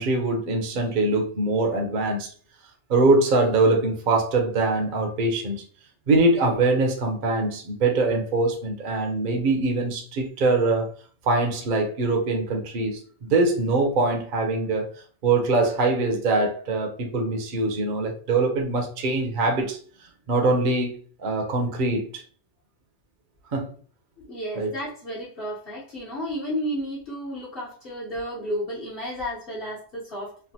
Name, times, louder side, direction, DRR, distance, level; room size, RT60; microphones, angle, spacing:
voice 1, 0.0-2.3 2.9-5.6 6.1-10.9 11.3-14.9 15.2-19.8 20.3-22.2 23.5-23.7 24.6-24.7, right 2 dB, 50° right, 0.7 m, -23 dB
voice 2, 24.2-30.5, equal, 55° left, 1.1 m, -32 dB
3.2 x 2.1 x 2.7 m
omnidirectional pair, 1.2 m